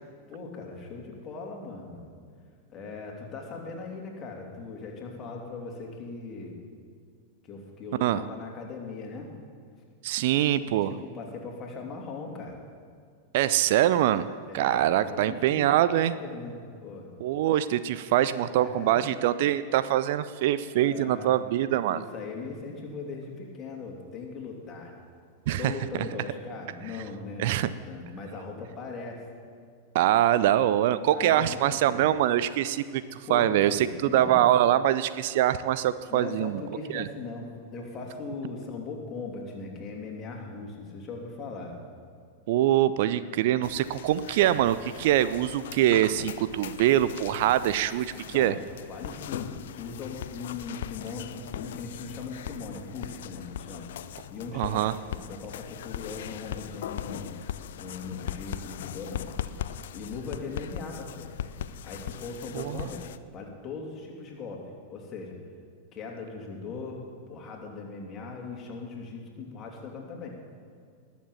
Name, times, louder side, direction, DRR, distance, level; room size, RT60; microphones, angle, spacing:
voice 1, 0.3-2.2 2.7-6.6 7.4-9.3 10.6-12.6 14.5-17.1 18.4-19.0 20.8-21.5 21.9-24.9 25.6-29.2 31.1-32.1 33.2-34.4 36.1-41.8 48.1-48.6 48.9-53.9 54.3-57.4 57.8-59.3 59.9-61.3 61.8-65.4 65.9-70.4, left 4 dB, 30° left, 0 dB, 2.9 m, -39 dB
voice 2, 10.0-10.9 13.3-14.3 14.5-16.1 17.2-22.0 25.5-25.7 27.4-27.7 29.9-36.6 36.9-37.1 42.5-48.5 54.5-54.9 62.5-62.9, right 12 dB, 50° right, 14 dB, 0.4 m, -24 dB
sound 1, 43.6-63.2, left 10 dB, 60° left, 0.5 m, -39 dB
19.5 x 7.3 x 7.2 m, 2.2 s
figure-of-eight pair, 90°, 0 cm